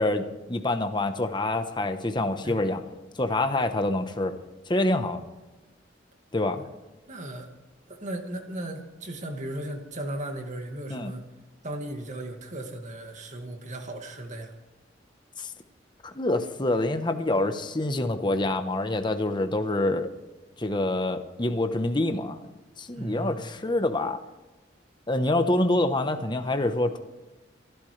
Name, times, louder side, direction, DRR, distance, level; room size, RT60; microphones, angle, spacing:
voice 1, 0.0-2.8 3.2-4.3 4.7-5.2 6.3-6.6 10.9-11.1 15.4-15.5 16.0-20.1 20.6-22.4 22.8-24.2 25.1-27.0, left 2 dB, 25° left, 7 dB, 1.0 m, -26 dB
voice 2, 7.1-7.5 7.9-11.2 11.6-14.5 23.0-23.4, right 1 dB, 40° right, 4 dB, 2.1 m, -36 dB
27.5 x 12.5 x 3.3 m, 1.1 s
head